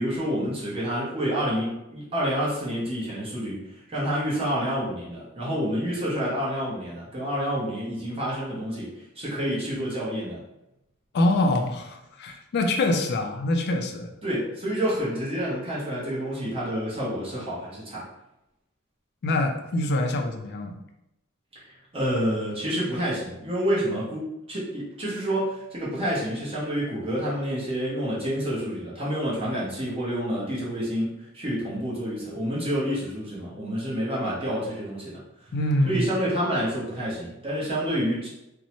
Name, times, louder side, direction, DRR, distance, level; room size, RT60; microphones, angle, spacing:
voice 1, 0.0-10.4 14.2-18.0 21.5-35.5 35.9-38.3, equal, 30° right, -7 dB, 0.8 m, -28 dB
voice 2, 11.1-14.1 19.2-20.8 35.5-36.0, left 1 dB, 50° left, 4 dB, 0.4 m, -25 dB
2.6 x 2.1 x 2.9 m, 0.87 s
head